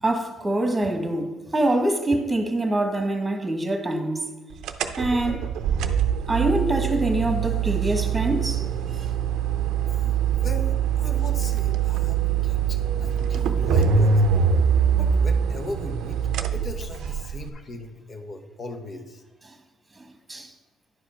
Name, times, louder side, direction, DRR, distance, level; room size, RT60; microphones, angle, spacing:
voice 1, 0.0-4.3 5.0-5.4 6.3-8.6 20.0-20.5, right 1 dB, 15° right, 1.4 m, -25 dB
sound 1, 4.6-17.5, right 7 dB, 70° right, 0.6 m, -23 dB
voice 2, 9.8-14.6 15.0-16.2 16.5-19.2, left 2 dB, 45° left, 1.2 m, -38 dB
10.0 x 4.9 x 5.7 m
supercardioid pair, 65°, 0 cm